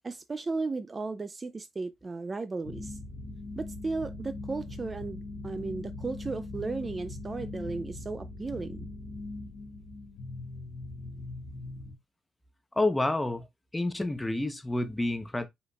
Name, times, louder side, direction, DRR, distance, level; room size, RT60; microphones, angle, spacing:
voice 1, 0.0-3.0 3.6-8.9, right 3 dB, 30° right, 0.4 m, -35 dB
sound 1, 2.6-11.9, left 2 dB, 45° left, 1.3 m, -40 dB
voice 2, 12.7-13.4 13.7-15.5, left 2 dB, 10° left, 0.8 m, -29 dB
5.0 x 4.1 x 2.3 m
cardioid pair, 90°, 0 cm